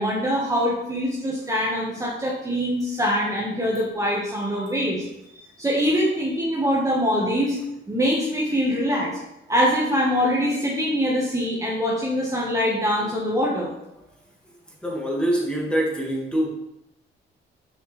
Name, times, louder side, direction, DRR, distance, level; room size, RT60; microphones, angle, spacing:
voice 1, 0.0-5.0 5.3-7.6 7.9-9.1 9.5-13.7, equal, 15° right, -4 dB, 1.5 m, -23 dB
voice 2, 14.8-16.5, right 1 dB, 5° left, -3 dB, 2.2 m, -24 dB
6.9 x 5.6 x 3.4 m, 0.87 s
cardioid pair, 90°, 20 cm